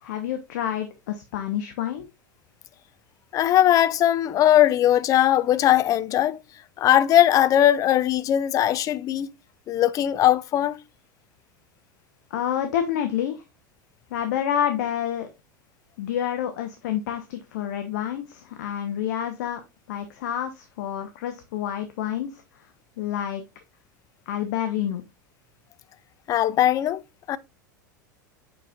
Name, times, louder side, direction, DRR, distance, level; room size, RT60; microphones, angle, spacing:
voice 1, 0.0-2.1 12.3-13.4 14.1-15.3 16.0-19.6 19.9-22.7 23.0-23.4 24.3-25.0, left 10 dB, 60° left, 1.0 m, -28 dB
voice 2, 3.3-6.4 6.8-9.3 9.7-10.8 26.3-27.0 27.3-27.4, left 12 dB, 35° left, 0.4 m, -19 dB
7.4 x 6.1 x 2.4 m
figure-of-eight pair, 85°, 11 cm